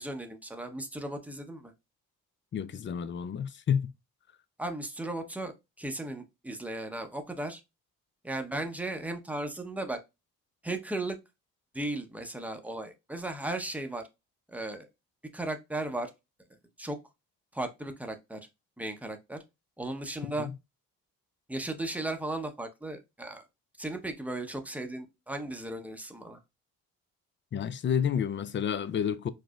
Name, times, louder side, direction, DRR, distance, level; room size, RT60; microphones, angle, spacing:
voice 1, 0.0-1.7 4.6-5.5 5.8-7.6 8.2-10.0 10.6-11.2 11.7-14.0 14.5-14.9 15.3-16.1 16.8-17.0 17.5-18.4 18.8-19.4 19.8-20.5 21.5-23.4 23.8-26.4, right 2 dB, 5° right, 0.7 m, -36 dB
voice 2, 2.5-3.9 20.4-20.5 27.5-29.3, left 8 dB, 35° left, 0.4 m, -30 dB
4.7 x 2.0 x 2.3 m
supercardioid pair, 55°, 35 cm